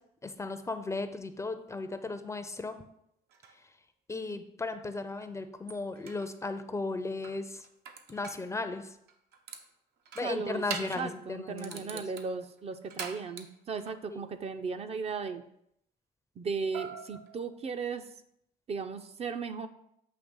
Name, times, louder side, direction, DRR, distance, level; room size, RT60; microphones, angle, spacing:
voice 1, 0.2-2.8 4.1-7.7 8.1-9.0 10.2-12.0 14.1-14.2, left 3 dB, 15° left, 9 dB, 0.5 m, -36 dB
sound 1, 3.3-3.6 5.2-5.3 5.7-6.3 7.2-8.5 9.1-9.7 10.1-11.1 11.6-14.0 16.7-18.0, right 6 dB, 75° right, 0.8 m, -43 dB
voice 2, 10.2-15.4 16.4-18.0 18.7-19.7, right 5 dB, 40° right, 8 dB, 0.5 m, -36 dB
7.7 x 2.8 x 5.3 m, 0.75 s
cardioid pair, 110°, 17 cm